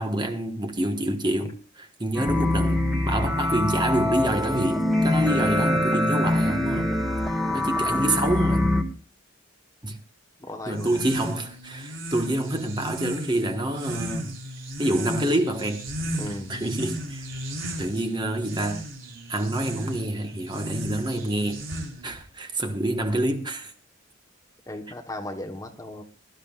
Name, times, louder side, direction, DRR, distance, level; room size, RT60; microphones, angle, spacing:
voice 1, 0.0-1.5 2.0-6.9 7.5-8.7 9.8-10.0 10.7-14.3 14.8-15.8 16.3-17.3 17.8-18.8 19.3-21.6 22.0-23.7, right 1 dB, 20° right, 1.3 m, -27 dB
sound 1, 2.1-8.8, left 1 dB, ahead, 1.3 m, -24 dB
voice 2, 5.2-5.6 7.5-8.1 10.4-11.0 16.2-16.6 24.7-26.0, left 1 dB, 15° left, 1.1 m, -36 dB
sound 2, 10.7-22.2, equal, 75° right, 3.5 m, -35 dB
22.0 x 12.5 x 2.4 m
head